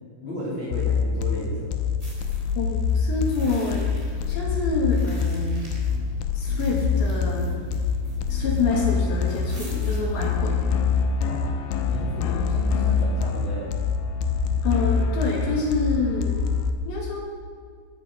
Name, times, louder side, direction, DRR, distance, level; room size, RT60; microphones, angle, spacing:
voice 1, 0.2-1.9 11.3-11.5 11.9-13.6, equal, 25° left, -7 dB, 3.8 m, -33 dB
sound 1, 0.7-16.7, left 6 dB, 80° left, 3.4 m, -25 dB
sound 2, 2.0-10.5, right 3 dB, 15° right, 2.8 m, -42 dB
voice 2, 2.6-3.9 4.3-5.7 6.4-7.5 8.3-10.6 14.6-16.4 16.9-17.2, left 3 dB, 65° left, -2 dB, 4.5 m, -27 dB
Bass guitar, 5.0-14.6, right 4 dB, 75° right, 4.2 m, -37 dB
21.0 x 10.5 x 5.4 m, 2.1 s
omnidirectional pair, 5.7 m